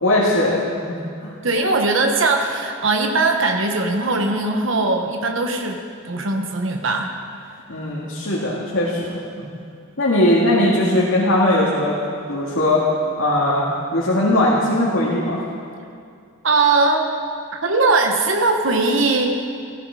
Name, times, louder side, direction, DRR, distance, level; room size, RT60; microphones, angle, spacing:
voice 1, 0.0-1.3 7.7-9.5 10.0-12.0 12.3-12.9 13.2-15.4, left 1 dB, 75° left, -6 dB, 2.1 m, -19 dB
voice 2, 1.4-5.8 6.0-7.1 16.4-17.1 17.6-19.3, right 3 dB, 65° right, 3 dB, 1.2 m, -19 dB
16.5 x 15.0 x 4.9 m, 2.4 s
head